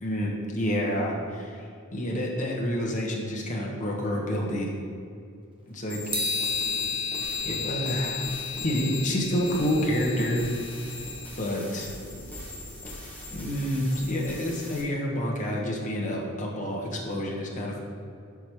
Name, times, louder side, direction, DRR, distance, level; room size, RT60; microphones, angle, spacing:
voice 1, 0.0-4.7 5.7-6.2 7.4-8.3 8.6-10.5 11.4-11.9 13.3-17.8, equal, 40° left, -2 dB, 1.2 m, -28 dB
sound 1, 5.9-14.8, left 2 dB, 10° left, 1.2 m, -40 dB
sound 2, 6.1-11.4, left 4 dB, 25° right, 1.0 m, -33 dB
5.1 x 4.8 x 6.0 m, 2.4 s
head